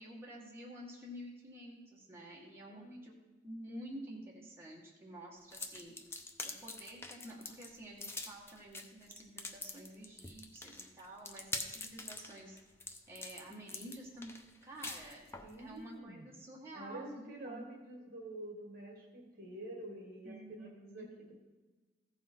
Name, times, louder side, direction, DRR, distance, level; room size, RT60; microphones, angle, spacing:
voice 1, 0.0-6.0 6.4-12.6 13.1-14.3 14.6-15.3 15.6-17.6 20.2-21.1, right 1 dB, 15° right, -5 dB, 1.7 m, -50 dB
voice 2, 2.7-3.0 15.4-16.2 16.7-21.4, right 1 dB, 50° right, 1 dB, 1.8 m, -48 dB
sound 1, 5.5-15.5, left 2 dB, 15° left, 0.6 m, -45 dB
15.0 x 5.6 x 4.5 m, 1.3 s
head